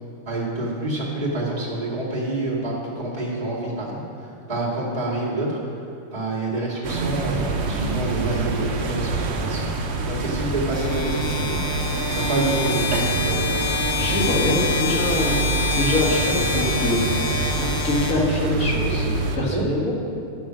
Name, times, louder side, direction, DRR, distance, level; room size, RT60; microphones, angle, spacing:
voice 1, 0.3-4.0 4.5-5.6 6.1-9.7 10.0-11.4 12.1-13.5 19.5-19.6, right 2 dB, 25° right, -5 dB, 2.2 m, -27 dB
sound 1, 6.8-19.4, right 3 dB, 55° right, 1.0 m, -26 dB
sound 2, 10.7-18.7, left 3 dB, 20° left, 0.9 m, -26 dB
voice 2, 14.0-15.5 15.8-17.0 17.6-19.9, left 2 dB, 75° left, -3 dB, 2.3 m, -24 dB
11.5 x 6.2 x 6.2 m, 2.5 s
omnidirectional pair, 1.5 m